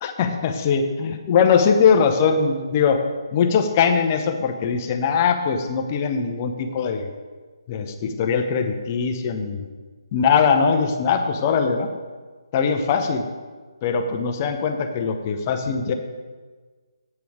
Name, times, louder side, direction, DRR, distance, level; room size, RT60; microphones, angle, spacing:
voice 1, 0.0-3.0 3.3-7.1 7.7-9.7 10.1-11.9 12.5-13.2 13.8-15.9, left 6 dB, 30° left, 5 dB, 0.8 m, -21 dB
8.5 x 8.4 x 4.8 m, 1.4 s
figure-of-eight pair, 150°, 3 cm